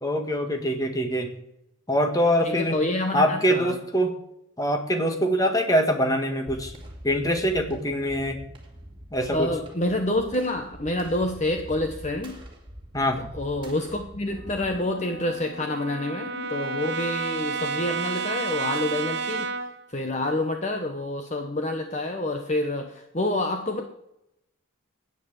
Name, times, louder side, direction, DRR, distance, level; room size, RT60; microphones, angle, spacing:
voice 1, 0.0-1.3 1.9-2.8 3.1-4.1 4.6-6.7 7.0-8.4 9.1-9.5 12.9-13.3, equal, 15° left, 5 dB, 1.6 m, -24 dB
voice 2, 2.4-3.7 9.3-12.4 13.4-19.5 19.9-23.8, left 1 dB, 35° left, 5 dB, 1.0 m, -28 dB
sound 1, 6.5-15.6, equal, 25° right, 2.4 m, -44 dB
Brass instrument, 14.3-19.8, right 4 dB, 55° right, 0.9 m, -31 dB
10.5 x 9.3 x 7.9 m, 0.81 s
head